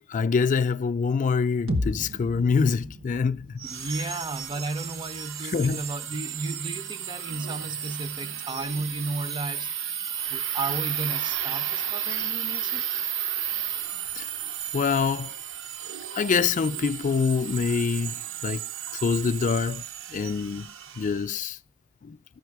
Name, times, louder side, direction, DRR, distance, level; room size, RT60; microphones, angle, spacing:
voice 1, 0.1-3.6 5.4-5.8 14.1-14.3 14.7-15.3 16.1-18.6 18.9-19.8 20.1-21.6 22.0-22.2, left 5 dB, 40° left, 0.4 m, -25 dB
sound 1, 1.7-5.6, left 1 dB, 90° right, 1.2 m, -35 dB
voice 2, 3.6-9.7 10.3-12.9, right 3 dB, 25° right, 0.5 m, -34 dB
sound 2, 3.6-21.3, right 9 dB, 65° right, 0.6 m, -33 dB
14.0 x 5.6 x 4.6 m
head